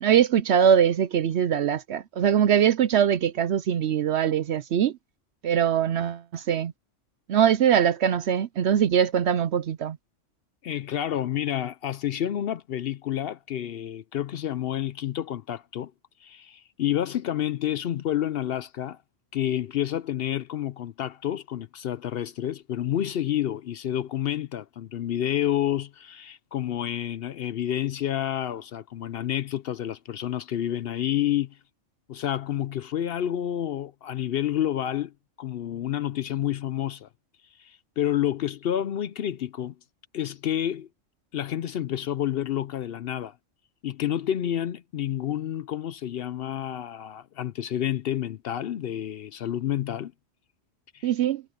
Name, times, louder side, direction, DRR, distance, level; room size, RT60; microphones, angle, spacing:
voice 1, 0.0-4.9 5.4-6.7 7.3-10.0 51.0-51.4, right 9 dB, 65° right, 0.8 m, -22 dB
voice 2, 10.6-15.9 16.2-19.0 19.3-31.6 32.1-35.1 35.4-37.1 37.6-39.7 40.1-40.9 41.3-43.3 43.8-50.1 50.9-51.1, left 11 dB, 65° left, 0.6 m, -29 dB
omnidirectional pair, 1.3 m